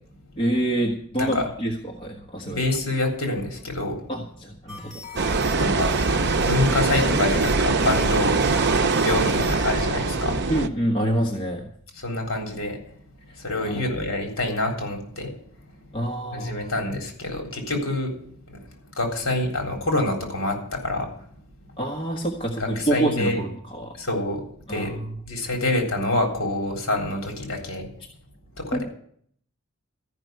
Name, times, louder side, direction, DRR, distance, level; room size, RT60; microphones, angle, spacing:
voice 1, 0.4-2.6 4.1-5.0 10.5-11.7 13.6-13.8 15.9-16.7 21.8-23.9 24.7-25.2 28.7-28.8, right 1 dB, 25° left, 0 dB, 1.3 m, -27 dB
voice 2, 2.5-4.0 5.6-5.9 6.4-10.4 12.0-12.8 13.3-15.3 16.3-18.1 18.5-21.1 22.6-23.4 23.9-24.4 24.7-25.0 25.3-27.9 28.6-28.8, left 2 dB, 60° left, 3 dB, 3.8 m, -26 dB
sound 1, 4.7-9.7, left 3 dB, ahead, 4.8 m, -40 dB
sound 2, 5.2-10.7, right 3 dB, 50° right, 0.7 m, -22 dB
13.5 x 5.9 x 9.2 m, 0.62 s
head